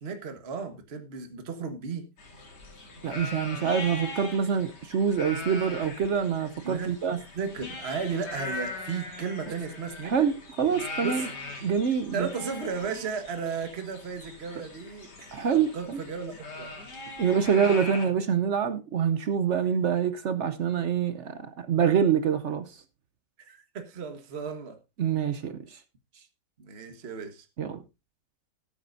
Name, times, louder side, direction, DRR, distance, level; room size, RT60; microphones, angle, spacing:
voice 1, 0.0-2.1 6.6-7.0 7.3-10.1 11.0-11.3 12.1-16.7 23.4-24.8 26.6-27.5, right 5 dB, 40° right, 1.5 m, -35 dB
sound 1, 2.2-18.1, left 2 dB, 70° left, 3.1 m, -40 dB
voice 2, 3.0-7.2 9.5-9.6 10.0-11.3 11.6-12.3 15.3-16.0 17.2-22.7 25.0-25.8 27.6-27.8, right 7 dB, 60° right, 0.8 m, -26 dB
18.0 x 8.6 x 2.6 m
omnidirectional pair, 1.9 m